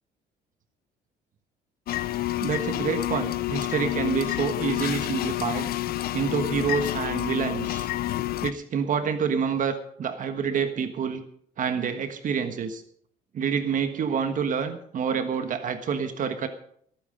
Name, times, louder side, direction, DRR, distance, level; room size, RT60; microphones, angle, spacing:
sound 1, 1.9-8.5, left 15 dB, 65° left, 0.6 m, -29 dB
voice 1, 2.4-5.7 6.1-7.9 8.4-11.2 11.6-12.8 13.3-16.5, right 6 dB, 50° right, 8 dB, 1.4 m, -27 dB
18.0 x 9.1 x 5.2 m, 0.65 s
cardioid pair, 110°, 17 cm